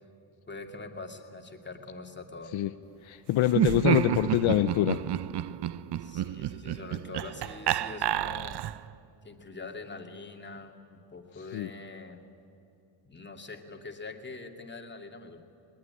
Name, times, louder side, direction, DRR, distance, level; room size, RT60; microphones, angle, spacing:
voice 1, 0.5-2.6 6.0-8.6 9.2-12.3 13.0-15.4, left 3 dB, 20° left, 4 dB, 2.4 m, -44 dB
voice 2, 3.0-5.0 11.5-11.7, left 13 dB, 65° left, 10 dB, 0.8 m, -25 dB
Laughter, 3.5-8.9, right 12 dB, 55° right, 0.7 m, -30 dB
20.5 x 20.0 x 9.8 m, 2.8 s
cardioid pair, 95°, 50 cm